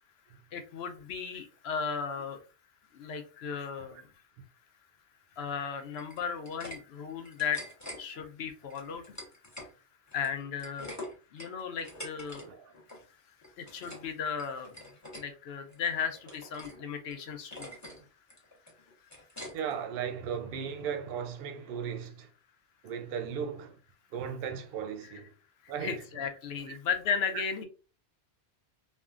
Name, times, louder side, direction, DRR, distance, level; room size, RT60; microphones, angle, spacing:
voice 1, 0.5-2.4 2.9-4.1 5.4-7.6 8.0-9.2 10.1-10.9 11.3-12.5 13.6-14.7 15.1-17.7 25.6-27.7, left 6 dB, 70° left, 0.8 m, -35 dB
sound 1, 5.9-6.8 7.1-8.0 8.7-9.7 10.1-12.4 12.7-13.0 13.4-14.1 14.4-15.2 15.7-16.8 17.1-17.2 17.5-18.0 18.3-19.8, left 1 dB, 15° left, 0.8 m, -45 dB
voice 2, 12.4-12.7 19.5-22.3 22.8-23.8 24.1-25.3 25.7-26.0 26.7-26.8 27.3-27.4, right 7 dB, 65° right, 0.7 m, -36 dB
3.3 x 2.2 x 2.4 m
omnidirectional pair, 1.2 m